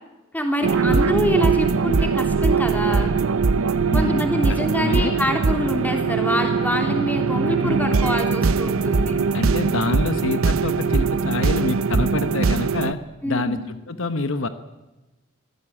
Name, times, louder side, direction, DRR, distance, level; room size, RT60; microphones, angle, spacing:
voice 1, 0.3-3.2 3.9-9.2 13.2-13.6, equal, 10° left, 3 dB, 3.1 m, -25 dB
sound 1, 0.6-12.9, right 4 dB, 80° right, 0.7 m, -21 dB
voice 2, 3.9-5.2 9.3-13.0 13.3-14.5, left 2 dB, 65° left, 10 dB, 1.0 m, -26 dB
24.0 x 16.0 x 8.7 m, 1.1 s
head